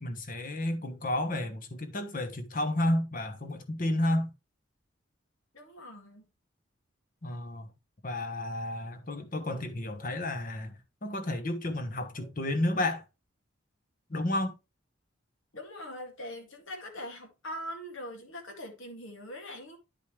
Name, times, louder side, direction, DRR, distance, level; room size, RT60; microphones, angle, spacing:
voice 1, 0.0-4.3 7.2-7.7 8.0-13.0 14.1-14.5, left 1 dB, 45° left, 1.1 m, -31 dB
voice 2, 5.5-6.2 15.5-19.8, equal, 80° left, 2.1 m, -42 dB
10.0 x 5.3 x 3.1 m
head